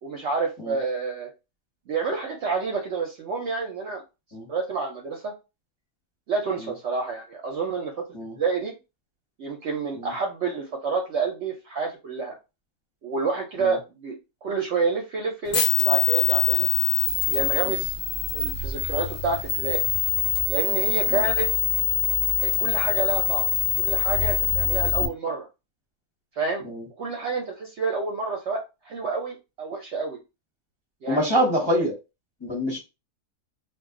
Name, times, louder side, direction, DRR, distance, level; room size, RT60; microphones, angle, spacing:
voice 1, 0.0-1.3 1.9-4.0 4.5-5.3 6.3-8.0 8.4-8.8 9.4-12.4 13.0-16.7 17.2-17.9 18.3-19.8 20.5-21.5 22.4-23.5 23.8-25.5 26.4-26.6 27.0-30.2 31.0-31.4, right 4 dB, 65° right, 2 dB, 0.8 m, -29 dB
sound 1, 15.5-25.1, left 7 dB, 60° left, 0.4 m, -24 dB
voice 2, 31.0-31.9 32.4-32.8, equal, 25° left, -3 dB, 0.8 m, -25 dB
2.5 x 2.3 x 3.6 m, 0.27 s
omnidirectional pair, 1.6 m